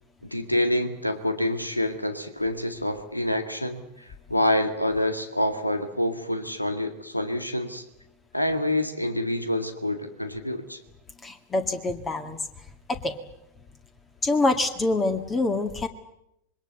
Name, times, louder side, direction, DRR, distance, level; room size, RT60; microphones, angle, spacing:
voice 1, 0.3-3.8 4.3-7.8 8.3-10.8, left 1 dB, 85° left, 8 dB, 2.0 m, -27 dB
voice 2, 11.2-12.4 12.9-13.2 14.2-15.9, left 2 dB, 20° left, 8 dB, 1.9 m, -25 dB
26.0 x 22.0 x 8.1 m, 0.82 s
figure-of-eight pair, 90°, 0 cm